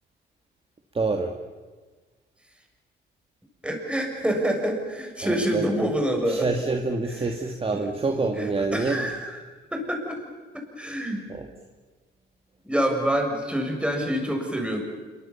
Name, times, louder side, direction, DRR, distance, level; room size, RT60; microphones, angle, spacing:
voice 1, 0.9-1.3 5.2-5.7 6.3-9.1 11.3-11.5, right 3 dB, 30° right, 4 dB, 2.2 m, -27 dB
voice 2, 3.6-6.5 7.2-7.3 7.7-7.9 8.3-9.4 9.7-10.2 10.5-11.2 12.6-14.8, equal, 5° right, 2 dB, 7.0 m, -27 dB
27.0 x 23.5 x 7.2 m, 1.4 s
cardioid pair, 90°, 20 cm